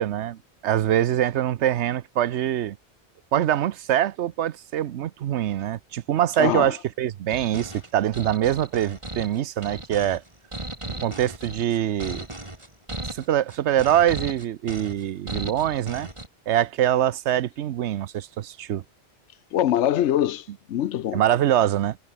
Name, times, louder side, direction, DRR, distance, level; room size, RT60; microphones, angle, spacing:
voice 1, 0.0-2.8 3.3-10.2 10.9-12.3 13.0-16.1 16.5-18.8 21.1-22.0, right 11 dB, 85° right, 1.0 m, -24 dB
voice 2, 6.4-6.7 19.5-21.2, left 11 dB, 85° left, 1.0 m, -23 dB
sound 1, 7.3-16.3, right 1 dB, 25° right, 2.9 m, -36 dB
omnidirectional pair, 1.1 m